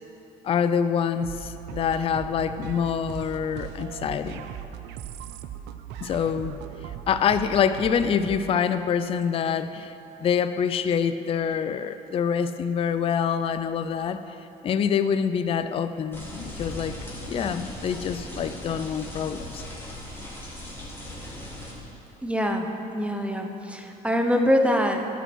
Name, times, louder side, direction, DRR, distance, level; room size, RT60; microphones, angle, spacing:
voice 1, 0.4-4.4 6.0-6.6 7.1-9.9 10.2-14.2 14.6-16.9 17.3-19.6, left 7 dB, 35° left, 11 dB, 0.4 m, -26 dB
sound 1, 1.2-8.6, right 10 dB, 90° right, 0.4 m, -39 dB
sound 2, 16.1-21.7, left 1 dB, 15° left, 2.2 m, -38 dB
voice 2, 22.2-25.1, equal, 5° right, 4 dB, 0.7 m, -24 dB
11.5 x 5.5 x 6.1 m, 3.0 s
cardioid pair, 110°, 17 cm